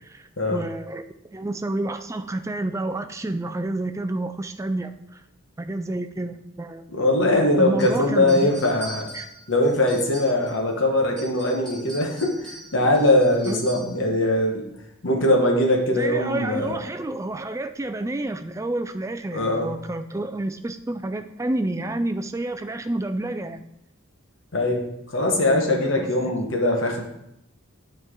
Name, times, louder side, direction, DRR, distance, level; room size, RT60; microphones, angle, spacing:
voice 1, 0.1-1.0 1.3-5.2 5.6-6.9 7.6-8.5 9.1-9.3 13.5-13.7 15.9-23.6 25.5-26.4, right 2 dB, 15° right, 8 dB, 0.3 m, -29 dB
voice 2, 6.9-9.0 9.5-14.6 15.0-16.7 19.3-19.7 24.5-27.0, left 1 dB, 60° left, 2 dB, 1.2 m, -21 dB
sound 1, 7.8-10.7 11.0-14.0, right 2 dB, 5° left, 2.3 m, -42 dB
9.5 x 4.5 x 3.7 m, 0.82 s
head